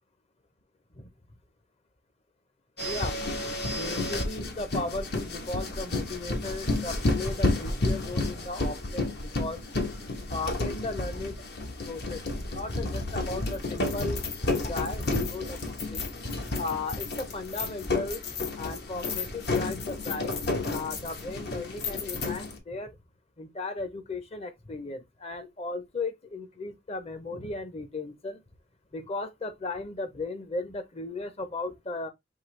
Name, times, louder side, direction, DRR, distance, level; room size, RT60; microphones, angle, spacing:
sound 1, 2.8-22.6, left 2 dB, 60° left, 1.1 m, -31 dB
voice 1, 2.8-3.4 3.7-9.6 10.3-11.4 11.8-12.2 12.5-14.2 14.5-18.2 18.6-20.4 20.7-23.0 23.4-28.4 28.9-32.1, left 2 dB, 35° left, 0.8 m, -36 dB
5.8 x 2.8 x 3.2 m
head